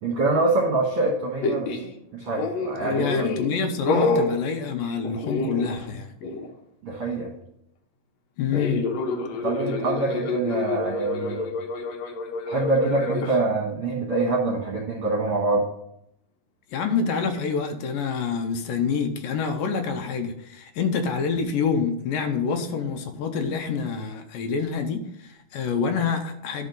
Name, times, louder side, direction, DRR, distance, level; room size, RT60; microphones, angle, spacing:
voice 1, 0.0-1.7 2.1-3.3 6.8-7.3 9.4-11.5 12.5-15.7, right 2 dB, 50° right, -3 dB, 1.9 m, -25 dB
sound 1, 1.4-1.9 2.3-3.5 3.9-4.3 5.0-6.0 6.2-6.5 8.5-13.4, left 3 dB, 60° left, 2.0 m, -28 dB
voice 2, 2.8-6.1 8.4-8.8 10.1-10.2 16.7-26.7, left 5 dB, 85° left, 5 dB, 2.4 m, -27 dB
11.0 x 6.4 x 3.9 m, 0.76 s
omnidirectional pair, 4.0 m